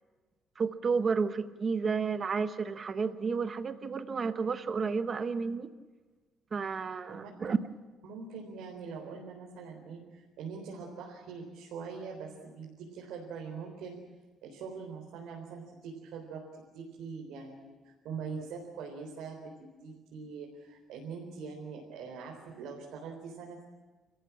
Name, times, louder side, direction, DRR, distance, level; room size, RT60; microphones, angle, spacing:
voice 1, 0.6-5.7 6.5-7.6, right 5 dB, 30° right, 10 dB, 0.9 m, -31 dB
voice 2, 8.0-14.0 14.4-23.6, right 5 dB, 80° right, -1 dB, 4.1 m, -43 dB
29.0 x 14.5 x 8.7 m, 1.3 s
cardioid pair, 170°, 0 cm